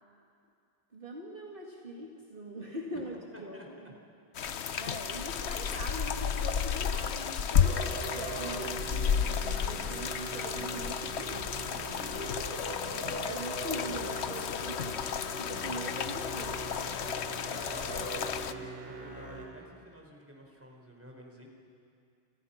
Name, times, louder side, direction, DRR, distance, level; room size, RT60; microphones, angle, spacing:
voice 1, 0.9-4.0 4.8-12.2 13.2-15.0 15.4-16.7, right 1 dB, 55° right, -1 dB, 2.5 m, -42 dB
voice 2, 3.3-3.9 12.7-13.1 17.1-21.5, equal, 10° right, 0 dB, 4.6 m, -51 dB
sound 1, 4.3-18.5, left 7 dB, 85° left, 1.1 m, -32 dB
Musical instrument, 7.6-19.5, right 1 dB, 90° right, 4.2 m, -41 dB
29.5 x 27.5 x 5.9 m, 2.4 s
omnidirectional pair, 1.1 m